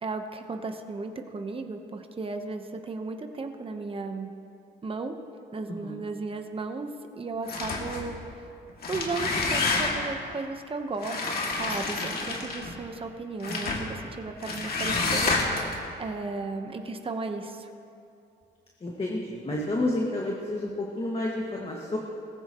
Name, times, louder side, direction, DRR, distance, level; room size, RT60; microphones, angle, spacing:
voice 1, 0.0-4.3 4.8-5.1 5.5-8.2 8.9-17.7, right 3 dB, 25° right, 5 dB, 1.1 m, -35 dB
sound 1, 7.5-8.1 8.7-10.2 11.0-12.7 13.4-13.9 14.4-15.8, left 3 dB, 50° left, 2.5 m, -28 dB
voice 2, 18.8-22.0, left 1 dB, 30° left, -2 dB, 1.9 m, -30 dB
19.5 x 15.0 x 3.1 m, 2.6 s
cardioid pair, 90°, 20 cm